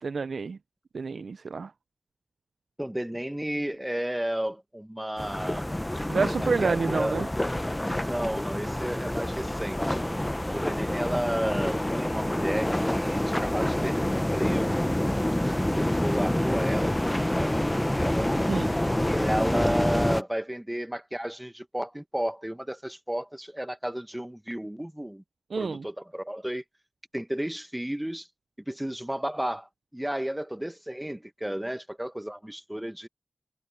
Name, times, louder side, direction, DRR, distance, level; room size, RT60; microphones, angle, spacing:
voice 1, 0.0-0.6 0.9-1.7 6.1-7.3 18.5-18.7 25.5-25.9, right 4 dB, 90° right, 0.4 m, -28 dB
voice 2, 2.8-5.7 6.4-7.2 8.0-10.0 10.5-15.4 15.7-18.3 19.0-25.2 25.6-26.6 27.1-28.3 28.7-33.1, right 1 dB, 10° right, 1.1 m, -33 dB
sound 1, 5.2-20.2, left 1 dB, 15° left, 0.6 m, -27 dB
wide cardioid pair, 85°, 0 cm